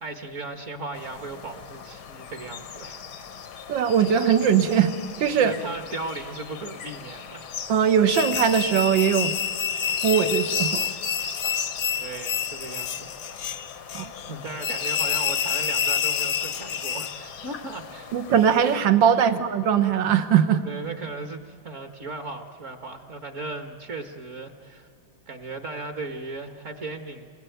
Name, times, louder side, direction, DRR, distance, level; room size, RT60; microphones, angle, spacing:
voice 1, 0.0-3.0 3.5-3.7 5.4-7.5 12.0-13.2 14.3-18.3 19.2-19.3 20.6-24.9 25.3-27.3, right 3 dB, 40° right, 8 dB, 1.6 m, -36 dB
sound 1, 0.9-18.8, left 7 dB, 90° left, 2.3 m, -39 dB
voice 2, 3.7-5.5 7.7-9.4 10.0-10.9 13.9-14.1 18.1-20.6, right 8 dB, 65° right, 11 dB, 1.8 m, -20 dB
sound 2, 8.1-17.2, left 8 dB, 60° left, 1.0 m, -28 dB
27.0 x 21.0 x 9.3 m, 2.5 s
omnidirectional pair, 2.2 m